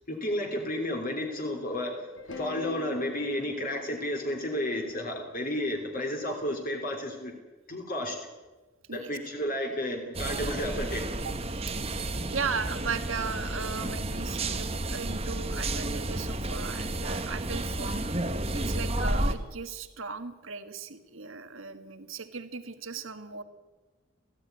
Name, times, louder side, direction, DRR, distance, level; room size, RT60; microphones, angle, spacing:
voice 1, 0.1-2.1 2.4-7.3 7.7-8.2 8.9-11.0, left 1 dB, 40° left, 1 dB, 3.3 m, -32 dB
sound 1, 2.2-6.3, left 2 dB, 55° left, 2.5 m, -45 dB
sound 2, 10.1-19.3, right 2 dB, 25° right, 1.2 m, -31 dB
voice 2, 12.3-23.4, right 5 dB, 65° right, 8 dB, 1.6 m, -37 dB
19.0 x 15.0 x 9.5 m, 1.2 s
head